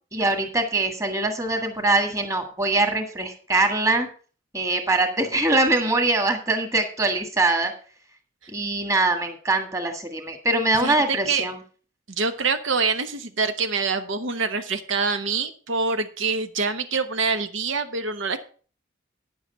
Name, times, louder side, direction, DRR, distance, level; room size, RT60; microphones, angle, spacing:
voice 1, 0.1-4.1 4.5-7.7 8.5-11.6, right 2 dB, 15° right, 5 dB, 1.6 m, -23 dB
voice 2, 10.8-11.4 12.2-18.4, right 4 dB, 85° right, 8 dB, 1.0 m, -25 dB
9.9 x 7.8 x 5.5 m, 0.40 s
head